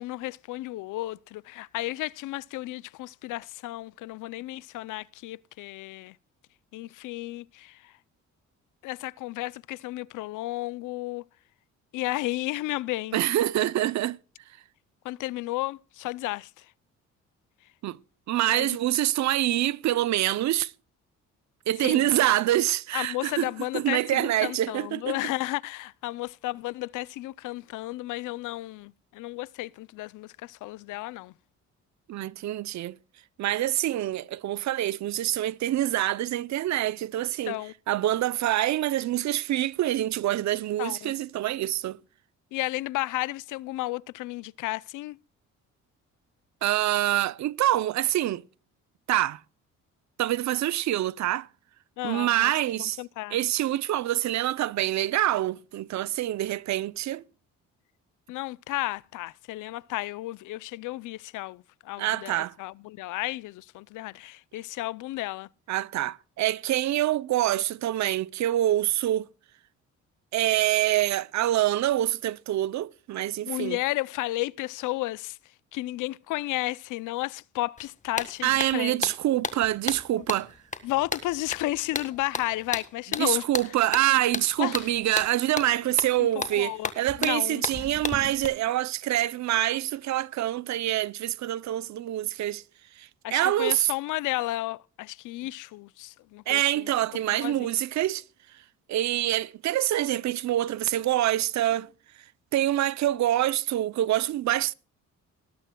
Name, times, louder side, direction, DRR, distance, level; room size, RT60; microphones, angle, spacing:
voice 1, 0.0-6.2 6.7-7.9 8.8-11.2 11.9-13.2 15.0-16.6 18.5-18.7 21.8-22.1 22.9-31.3 37.4-37.7 40.8-41.1 42.5-45.2 52.0-52.5 53.0-53.4 58.3-65.5 73.5-75.4 75.7-79.1 80.2-80.3 80.8-83.4 84.6-84.9 86.2-86.9 87.2-87.6 93.2-96.9 97.3-97.7, left 18 dB, 85° left, 0.5 m, -33 dB
voice 2, 13.1-14.2 17.8-18.0 18.3-20.7 21.7-25.2 32.1-33.0 33.4-37.6 37.9-42.0 46.6-48.4 49.1-49.4 50.2-51.5 52.0-53.0 53.3-57.2 62.0-62.5 65.7-69.3 70.3-73.8 78.4-80.5 83.2-92.6 93.0-93.9 96.5-98.2 98.9-101.9 102.5-104.7, right 13 dB, 65° right, 0.6 m, -26 dB
sound 1, 77.8-77.9 78.2-88.5, left 4 dB, 25° left, 1.6 m, -34 dB
19.0 x 11.5 x 2.2 m
cardioid pair, 90°, 30 cm